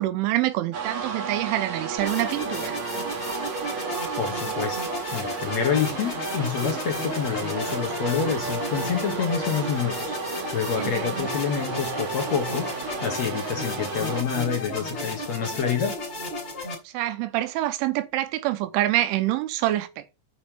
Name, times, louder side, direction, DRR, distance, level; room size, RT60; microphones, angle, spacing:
voice 1, 0.0-2.8 10.8-11.3 16.9-20.2, right 15 dB, 85° right, 3.1 m, -26 dB
sound 1, 0.7-14.2, right 5 dB, 55° right, 2.1 m, -33 dB
sound 2, 2.0-16.7, left 1 dB, 20° left, 4.2 m, -33 dB
voice 2, 4.2-4.8 5.1-10.1 10.5-12.7 13.0-16.0, left 7 dB, 60° left, 1.7 m, -27 dB
8.1 x 5.6 x 6.8 m
omnidirectional pair, 5.7 m